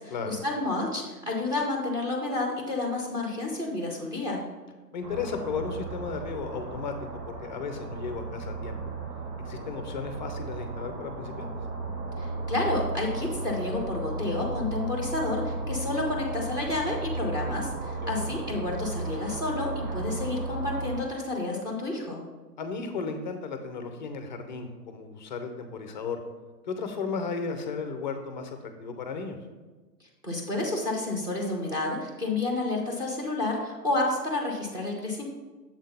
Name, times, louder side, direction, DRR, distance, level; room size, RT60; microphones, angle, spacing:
voice 1, 0.0-4.4 12.2-22.2 30.2-35.2, left 2 dB, 10° right, 0 dB, 0.8 m, -30 dB
voice 2, 4.9-6.9 7.3-8.8 9.5-11.5 18.0-18.4 22.6-26.2 26.7-29.4, left 5 dB, 30° left, 7 dB, 0.5 m, -34 dB
sound 1, 5.0-21.0, right 2 dB, 75° right, 2.0 m, -35 dB
7.2 x 3.7 x 5.4 m, 1.3 s
hypercardioid pair, 135°, 49 cm